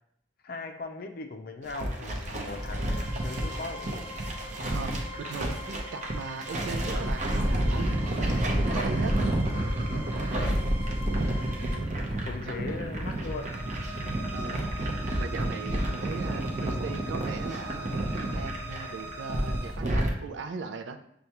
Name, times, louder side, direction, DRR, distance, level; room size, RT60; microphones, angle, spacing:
voice 1, 0.4-4.1 10.3-10.6 12.2-13.6, left 3 dB, 55° left, 6 dB, 0.4 m, -39 dB
sound 1, 1.6-20.1, right 1 dB, 40° right, 0.6 m, -30 dB
sound 2, 2.3-19.7, equal, 10° right, 0.8 m, -43 dB
voice 2, 4.7-9.2 12.5-12.8 14.3-21.0, right 4 dB, 85° right, 8 dB, 0.4 m, -39 dB
6.5 x 2.3 x 2.9 m, 0.74 s
head